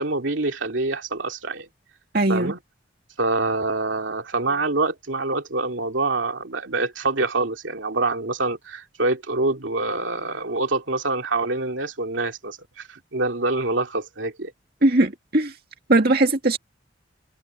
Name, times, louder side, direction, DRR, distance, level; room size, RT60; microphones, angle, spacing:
voice 1, 0.0-1.7 2.3-2.6 3.2-14.5, right 3 dB, 90° right, 2.5 m, -25 dB
voice 2, 2.1-2.5 14.8-15.5 15.9-16.6, right 2 dB, 55° right, 2.1 m, -19 dB
open air
head